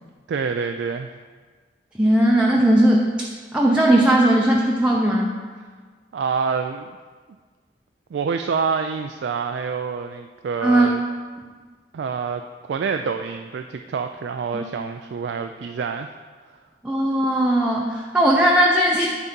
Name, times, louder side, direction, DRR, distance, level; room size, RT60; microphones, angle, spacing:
voice 1, 0.3-1.1 6.1-7.0 8.1-11.0 11.9-16.1, right 5 dB, 75° right, 6 dB, 0.3 m, -27 dB
voice 2, 2.0-3.1 3.5-5.3 10.6-10.9 14.5-14.7 16.8-19.1, right 1 dB, 5° right, -3 dB, 0.6 m, -18 dB
9.8 x 4.0 x 5.2 m, 1.5 s
head